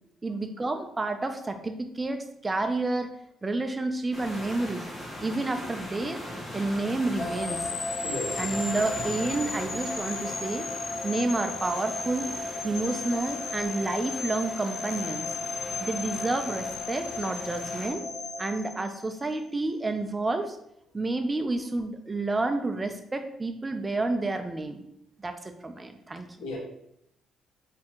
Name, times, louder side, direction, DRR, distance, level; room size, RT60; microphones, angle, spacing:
voice 1, 0.2-3.1 3.4-4.9 5.2-6.2 6.5-7.7 8.4-10.7 11.0-12.3 12.6-15.3 15.8-18.0 18.4-20.6 20.9-24.8 25.2-26.3, right 2 dB, 20° right, 7 dB, 0.4 m, -30 dB
sound 1, 4.1-17.9, left 1 dB, 5° left, 1.2 m, -40 dB
sound 2, 7.2-19.3, left 4 dB, 50° left, 0.4 m, -35 dB
voice 2, 8.0-8.6 26.4-26.6, left 2 dB, 90° left, -1 dB, 0.9 m, -35 dB
4.2 x 2.7 x 2.8 m, 0.77 s
cardioid pair, 90°, 0 cm